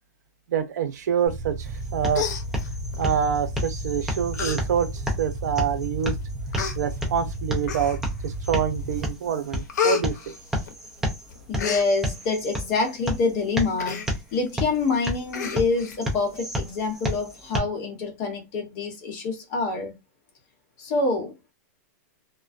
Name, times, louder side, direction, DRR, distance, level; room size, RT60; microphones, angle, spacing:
voice 1, 0.5-2.2 3.0-4.9 5.2-6.2 6.8-10.2, right 8 dB, 75° right, 0.6 m, -26 dB
sound 1, 1.3-9.0, right 1 dB, 45° right, 0.8 m, -33 dB
sound 2, 1.6-17.6, equal, 5° right, 0.4 m, -32 dB
Human voice, 1.7-1.8 2.1-3.0 3.8-3.9 4.3-4.6 5.0-5.1 5.8-5.9 6.5-6.8 7.6-8.2 8.7-9.0 9.3-11.0 11.3-11.9 13.8-14.1 14.5-14.6 14.8-14.9 15.3-16.0 16.3-16.4, left 8 dB, 80° left, 0.6 m, -29 dB
voice 2, 11.5-14.0 14.3-19.9 20.8-21.3, left 3 dB, 35° left, 0.9 m, -26 dB
2.4 x 2.1 x 2.5 m
supercardioid pair, 165°, 9 cm